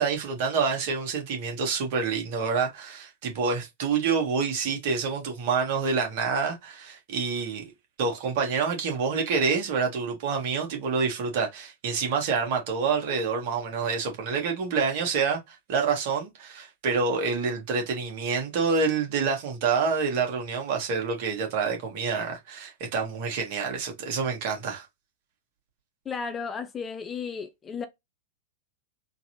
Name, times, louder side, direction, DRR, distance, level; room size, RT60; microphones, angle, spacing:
voice 1, 0.0-7.6 8.0-24.9, right 5 dB, 50° right, 1.7 m, -27 dB
voice 2, 26.0-27.9, left 5 dB, 20° left, 0.6 m, -34 dB
3.8 x 2.8 x 2.9 m
figure-of-eight pair, 95°, 0 cm